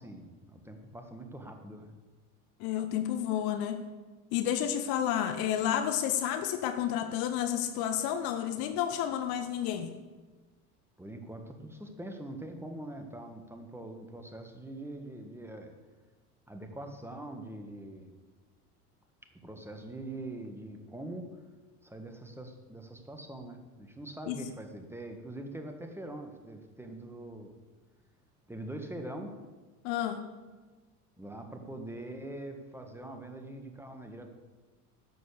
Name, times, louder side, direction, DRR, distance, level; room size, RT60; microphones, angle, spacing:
voice 1, 0.0-1.9 11.0-15.7 16.5-18.1 19.4-21.3 21.8-27.5 28.5-29.3 31.2-34.3, right 1 dB, 5° right, 4 dB, 1.7 m, -43 dB
voice 2, 2.6-3.8 4.3-9.9 24.3-24.4 29.8-30.2, left 10 dB, 50° left, 8 dB, 1.1 m, -31 dB
11.0 x 7.8 x 6.8 m, 1.3 s
figure-of-eight pair, 70°, 46 cm